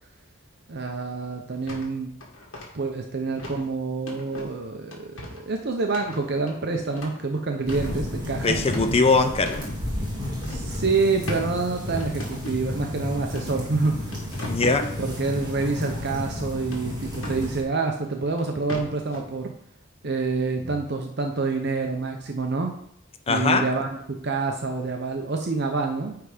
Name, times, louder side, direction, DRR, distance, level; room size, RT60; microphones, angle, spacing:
voice 1, 0.7-2.1 2.7-8.6 10.4-14.1 15.0-19.5 20.0-22.7 23.3-26.2, right 4 dB, 50° right, 3 dB, 0.7 m, -27 dB
sound 1, 1.7-1.9 2.2-2.7 3.4-3.6 4.1-4.5 4.9-5.4 5.9-7.2 7.6-8.1 8.5-9.7 10.4-10.7 11.3-11.4 12.0-12.7 13.4-13.5 13.8-15.0 16.7-17.5 18.4-18.5 18.7-19.2, left 1 dB, 75° left, 1.9 m, -37 dB
sound 2, 7.7-17.6, left 1 dB, 20° right, 2.0 m, -32 dB
voice 2, 8.4-9.6 14.4-14.9 20.6-20.7 23.3-23.7, left 3 dB, 30° left, 7 dB, 0.6 m, -21 dB
9.4 x 3.5 x 5.0 m, 0.71 s
head